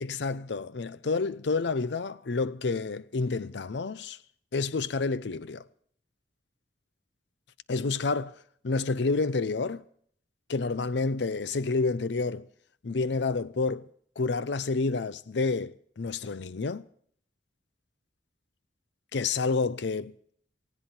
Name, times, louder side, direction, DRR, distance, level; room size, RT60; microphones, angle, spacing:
voice 1, 0.0-4.2 4.5-5.6 7.7-8.3 8.6-9.8 10.5-12.4 12.8-13.9 14.2-16.8 19.1-20.1, left 4 dB, 70° left, 0.6 m, -29 dB
18.5 x 16.5 x 4.4 m
head